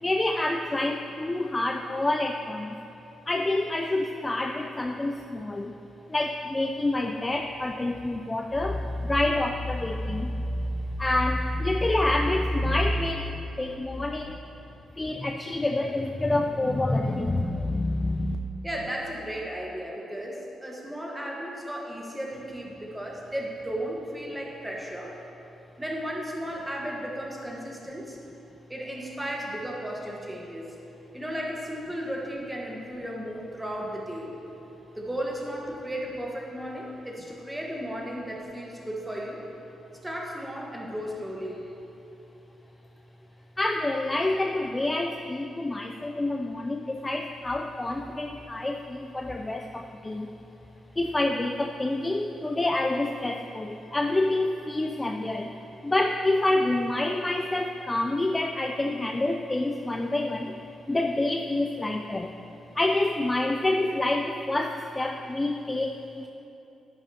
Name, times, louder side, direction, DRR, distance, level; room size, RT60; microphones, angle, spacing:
voice 1, 0.0-2.8 3.3-5.8 6.1-14.4 15.0-18.4 43.6-50.3 51.0-55.5 55.8-60.6 60.9-62.4 62.7-66.3, left 2 dB, 15° left, 3 dB, 0.3 m, -27 dB
voice 2, 18.6-25.1 25.8-28.2 28.7-30.7 31.1-34.3 35.0-39.4 40.0-41.6, equal, 10° right, -2 dB, 1.3 m, -35 dB
10.5 x 10.0 x 2.8 m, 2.8 s
cardioid pair, 130°, 0 cm